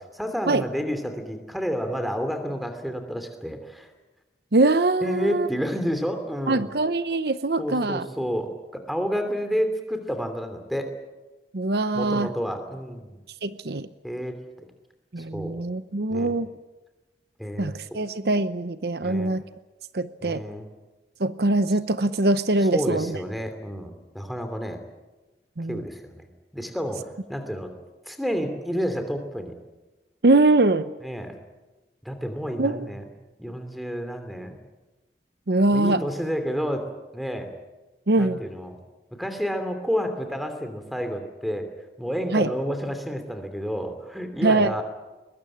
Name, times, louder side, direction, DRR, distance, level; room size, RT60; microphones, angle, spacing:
voice 1, 0.0-3.9 5.0-6.7 7.6-10.9 11.9-13.2 14.0-14.4 15.2-15.6 16.1-16.3 17.4-17.8 19.0-19.3 20.2-20.7 22.7-24.8 25.7-26.3 26.5-27.7 28.1-29.5 31.0-31.4 32.0-33.0 33.4-34.5 35.7-36.9 37.1-37.5 38.2-38.8 39.2-41.7 42.0-44.8, equal, ahead, 7 dB, 2.9 m, -30 dB
voice 2, 4.5-5.5 6.5-8.1 11.5-12.3 13.4-13.9 15.1-16.5 17.6-19.4 19.9-20.4 21.2-23.2 25.6-25.8 30.2-30.9 32.6-32.9 35.5-36.0 38.1-38.4 42.3-42.5 44.4-44.8, right 2 dB, 65° right, 12 dB, 0.8 m, -22 dB
22.0 x 22.0 x 8.7 m, 1.1 s
head